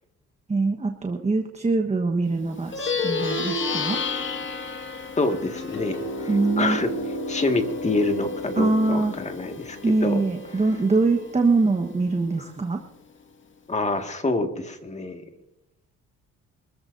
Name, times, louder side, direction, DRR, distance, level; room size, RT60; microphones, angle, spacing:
voice 1, 0.5-4.0 6.3-6.8 8.6-9.1 9.8-12.8, right 3 dB, 25° right, 4 dB, 1.3 m, -23 dB
Plucked string instrument, 2.6-12.3, left 3 dB, 40° left, 2.0 m, -31 dB
voice 2, 5.2-6.3 6.6-6.9 7.3-10.2 13.7-15.2, left 2 dB, 25° left, 5 dB, 2.0 m, -26 dB
26.5 x 14.0 x 2.7 m, 0.91 s
cardioid pair, 100°, 29 cm